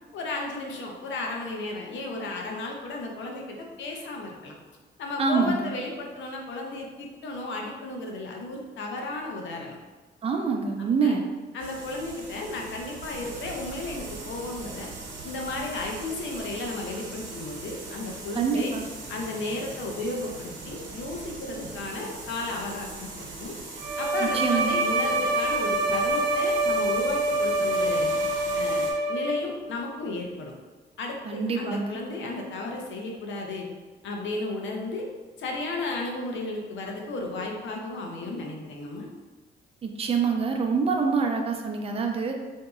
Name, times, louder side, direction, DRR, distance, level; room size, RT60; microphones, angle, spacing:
voice 1, 0.1-4.5 5.0-9.8 11.0-11.2 11.5-14.9 15.2-18.7 19.1-23.5 24.0-28.1 28.5-30.5 31.0-33.7 34.0-35.1 35.4-39.1, left 2 dB, 70° left, 0 dB, 0.7 m, -34 dB
voice 2, 5.2-5.7 10.2-11.3 18.4-18.8 24.2-24.9 31.2-32.0 39.8-42.4, right 5 dB, 30° right, 3 dB, 0.5 m, -26 dB
sound 1, 11.6-28.9, right 3 dB, 85° right, 0.8 m, -41 dB
Bowed string instrument, 23.8-29.6, right 1 dB, 50° right, 0.8 m, -25 dB
3.9 x 2.7 x 2.3 m, 1.3 s
cardioid pair, 90°, 20 cm